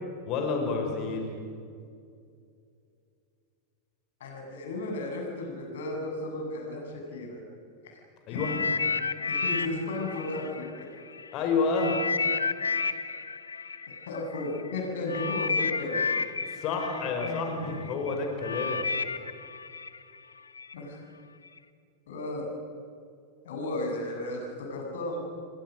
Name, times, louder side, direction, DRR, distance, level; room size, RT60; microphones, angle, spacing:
voice 1, 0.3-1.3 8.3-8.5 11.3-12.0 16.5-18.9, left 4 dB, 40° left, 3 dB, 5.6 m, -29 dB
voice 2, 4.2-7.4 7.8-8.5 9.3-10.9 14.1-16.2 17.2-17.8 20.7-21.0 22.1-22.4 23.4-25.2, left 2 dB, 60° left, 1 dB, 7.8 m, -34 dB
sound 1, 8.3-11.3 11.7-20.7 21.5-21.6, left 5 dB, 75° left, 1.0 m, -32 dB
29.5 x 24.5 x 6.5 m, 2.4 s
figure-of-eight pair, 90°, 0 cm